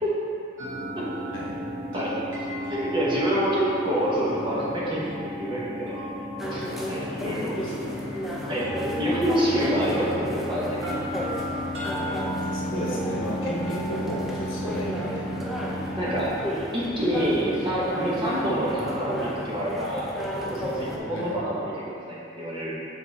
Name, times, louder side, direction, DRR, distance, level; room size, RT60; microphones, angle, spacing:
sound 1, 0.6-16.3, equal, 70° right, 1.4 m, -33 dB
voice 1, 2.7-6.0 6.5-6.6 6.9-7.6 8.5-8.7 9.0-11.2 12.0-12.2 16.0-16.3 16.7-20.1 20.4-22.7, equal, 25° right, -7 dB, 1.1 m, -27 dB
sound 2, 6.4-21.0, equal, ahead, 0.5 m, -34 dB
voice 2, 7.2-7.9 9.5-9.7 12.3-15.3 17.0-17.3 21.1-21.4, equal, 70° left, -5 dB, 1.2 m, -34 dB
7.0 x 3.8 x 4.2 m, 2.5 s
head